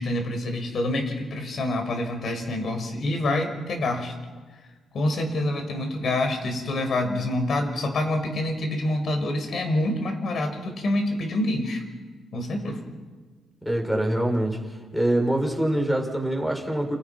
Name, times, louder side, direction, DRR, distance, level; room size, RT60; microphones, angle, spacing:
voice 1, 0.0-4.1 4.9-11.8 12.3-12.8, left 1 dB, 55° left, 5 dB, 5.9 m, -26 dB
voice 2, 13.6-14.6 14.9-17.0, right 1 dB, 5° left, 2 dB, 6.7 m, -24 dB
30.0 x 29.0 x 6.0 m, 1.4 s
cardioid pair, 90°, 0 cm